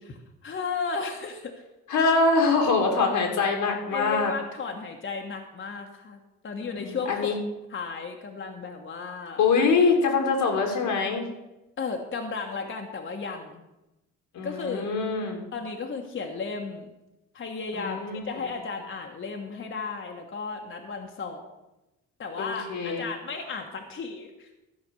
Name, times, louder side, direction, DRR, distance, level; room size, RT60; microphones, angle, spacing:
voice 1, 0.0-1.6 3.9-7.3 7.7-9.4 11.8-13.6 14.4-14.9 15.5-16.9 17.3-18.0 18.2-21.5 22.2-24.5, left 4 dB, 40° left, 3 dB, 1.3 m, -34 dB
voice 2, 1.9-4.3 6.8-7.3 9.4-11.2 14.3-15.5 17.7-18.2 22.4-23.0, left 4 dB, 80° left, 2 dB, 2.4 m, -24 dB
13.0 x 5.1 x 6.9 m, 0.97 s
cardioid pair, 90°, 30 cm